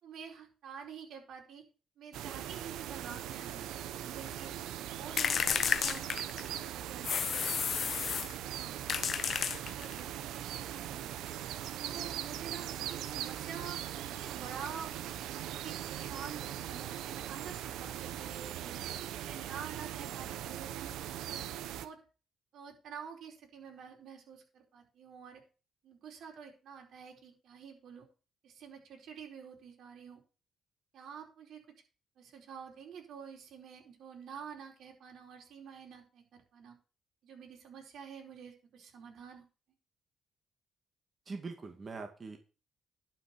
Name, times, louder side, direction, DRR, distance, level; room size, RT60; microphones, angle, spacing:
voice 1, 0.0-1.6 2.0-4.5 4.9-6.1 6.6-8.1 8.5-8.8 9.8-10.4 10.7-11.1 11.8-13.8 14.2-14.9 15.5-18.8 19.2-21.0 21.3-21.4 21.8-22.0 22.5-25.4 25.8-28.1 28.4-30.2 30.9-31.6 32.2-36.7 37.2-39.5, right 7 dB, 70° right, 1 dB, 4.6 m, -48 dB
sound 1, 2.1-21.9, right 11 dB, 90° right, 0.9 m, -40 dB
sound 2, 5.2-6.6 7.0-8.4 8.9-10.0, left 7 dB, 50° left, 0.6 m, -32 dB
voice 2, 41.3-42.4, right 4 dB, 35° right, 4 dB, 2.1 m, -42 dB
11.5 x 6.0 x 6.8 m, 0.34 s
cardioid pair, 90°, 0 cm